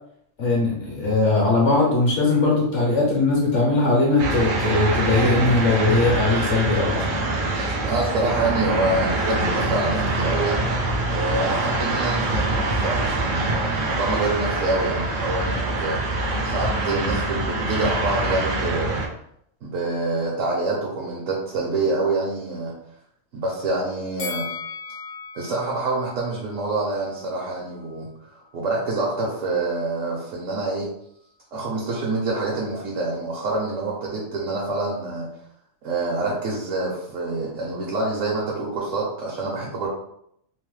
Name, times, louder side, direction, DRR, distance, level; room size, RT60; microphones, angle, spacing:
voice 1, 0.4-7.0, left 3 dB, 70° left, -3 dB, 1.1 m, -20 dB
sound 1, 4.2-19.1, right 2 dB, 60° right, 0.5 m, -24 dB
voice 2, 7.5-10.7 11.1-16.2 16.4-19.1 19.6-22.7 23.3-24.5 25.3-28.1 28.5-30.9 31.5-35.3 35.8-39.9, right 2 dB, 80° right, -4 dB, 1.1 m, -26 dB
Bell, 24.2-27.4 27.7-27.9, left 5 dB, 50° left, 0.7 m, -37 dB
3.1 x 2.0 x 3.1 m, 0.72 s
omnidirectional pair, 1.3 m